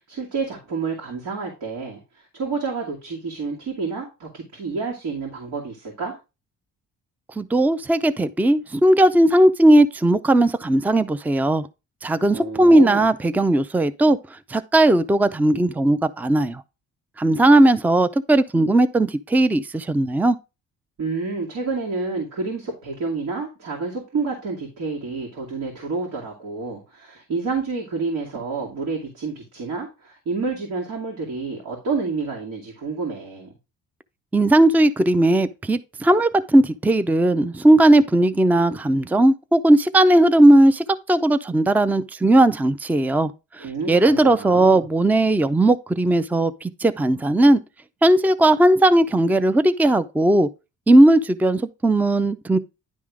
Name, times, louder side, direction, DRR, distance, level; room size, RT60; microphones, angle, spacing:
voice 1, 0.1-6.2 12.3-13.1 21.0-33.5 43.6-44.8, right 4 dB, 75° right, 2.5 m, -29 dB
voice 2, 7.4-11.7 12.0-16.6 17.2-20.4 34.3-47.6 48.0-50.5 50.9-52.6, right 1 dB, 5° right, 0.5 m, -17 dB
10.5 x 3.6 x 4.8 m
cardioid pair, 90°, 30 cm